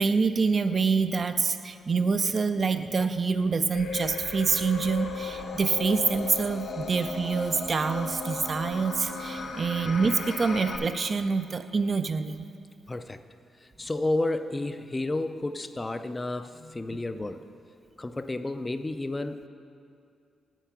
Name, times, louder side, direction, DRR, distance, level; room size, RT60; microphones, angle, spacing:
voice 1, 0.0-12.5, right 4 dB, 45° right, 10 dB, 0.4 m, -26 dB
sound 1, 3.7-10.8, left 4 dB, 70° left, 1.0 m, -36 dB
voice 2, 12.9-13.2 13.6-17.4 18.0-19.5, left 2 dB, 25° left, 10 dB, 0.4 m, -31 dB
9.0 x 4.5 x 7.3 m, 2.4 s
cardioid pair, 65°, 0 cm